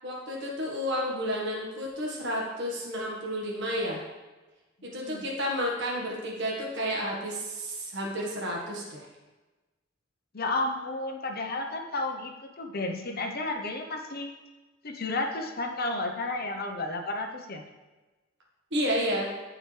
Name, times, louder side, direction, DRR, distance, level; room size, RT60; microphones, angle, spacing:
voice 1, 0.0-4.0 4.8-9.0 18.7-19.3, equal, 60° right, -3 dB, 1.7 m, -31 dB
voice 2, 5.0-5.3 10.3-14.3 14.8-17.6, left 2 dB, 50° left, 3 dB, 0.9 m, -32 dB
13.5 x 4.9 x 3.4 m, 1.2 s
head